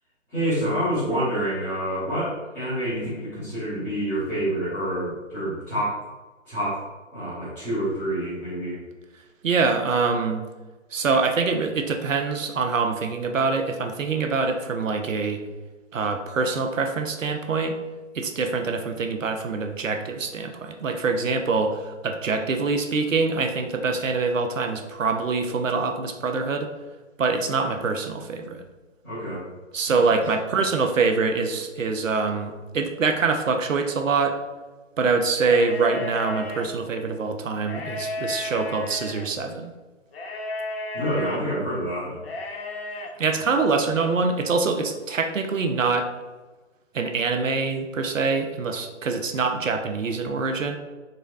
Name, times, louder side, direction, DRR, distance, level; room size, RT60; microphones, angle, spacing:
voice 1, 0.3-6.0 6.5-6.8 7.1-8.8 29.0-29.4 29.9-30.0 40.9-42.2, right 1 dB, 5° left, -13 dB, 0.6 m, -27 dB
voice 2, 9.4-10.4 10.9-15.4 15.9-17.8 18.1-26.7 27.2-28.6 29.7-34.4 35.0-39.7 43.2-46.1 46.9-50.8, right 4 dB, 90° right, 5 dB, 0.5 m, -24 dB
sound 1, 35.3-36.6 37.6-39.3 40.1-41.4 42.2-43.1, left 2 dB, 50° left, 0.5 m, -33 dB
3.8 x 2.0 x 2.3 m, 1.2 s
figure-of-eight pair, 135°, 37 cm